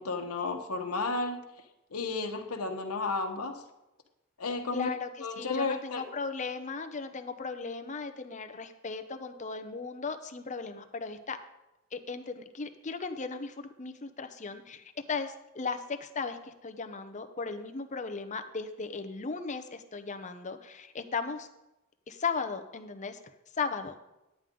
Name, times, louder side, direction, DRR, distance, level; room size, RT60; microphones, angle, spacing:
voice 1, 0.0-1.4 1.9-3.6 4.4-4.9 5.2-6.0, left 3 dB, 85° left, 4 dB, 1.1 m, -32 dB
voice 2, 4.7-11.4 11.9-21.5 22.1-23.2 23.5-23.9, left 4 dB, 35° left, 8 dB, 0.7 m, -36 dB
10.5 x 9.3 x 3.8 m, 0.96 s
head